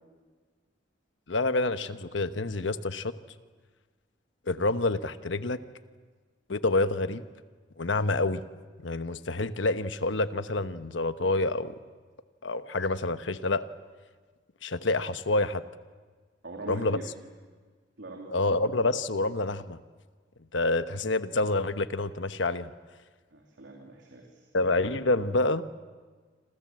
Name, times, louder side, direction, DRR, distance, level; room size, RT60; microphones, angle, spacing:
voice 1, 1.3-3.1 4.5-5.6 6.5-7.2 7.8-8.4 8.8-11.7 12.4-13.6 14.6-15.6 16.7-17.0 18.3-19.8 20.5-22.7 24.5-25.6, left 2 dB, 85° left, 11 dB, 1.1 m, -27 dB
voice 2, 16.4-17.0 18.0-18.6 23.3-24.5, right 2 dB, 75° right, 0 dB, 3.3 m, -42 dB
27.5 x 27.5 x 7.6 m, 1.5 s
head